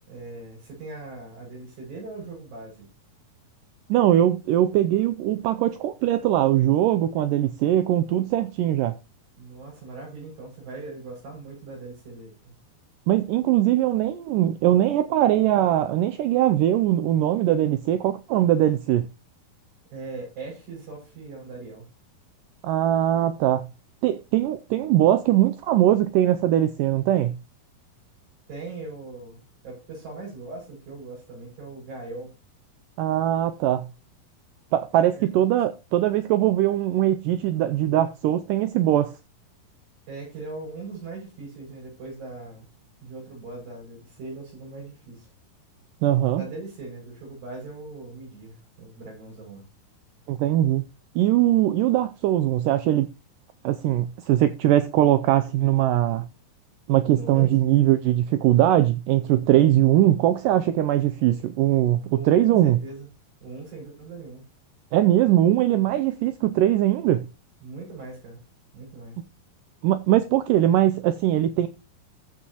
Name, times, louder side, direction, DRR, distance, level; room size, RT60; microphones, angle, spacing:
voice 1, 0.1-2.9 9.4-12.5 19.9-21.9 28.5-32.3 35.1-35.3 40.1-42.7 43.0-45.3 46.4-49.7 57.1-57.7 62.1-63.1 63.4-64.4 67.6-68.4 68.7-69.2, right 3 dB, 65° right, 7.8 m, -39 dB
voice 2, 3.9-9.0 13.1-19.0 22.6-23.7 24.0-27.4 33.0-33.9 34.7-39.1 46.0-46.4 50.3-50.9 51.2-53.1 53.6-56.3 56.9-62.8 64.9-67.3 69.8-71.7, right 13 dB, 90° right, 1.8 m, -21 dB
14.0 x 7.0 x 3.0 m
omnidirectional pair, 4.4 m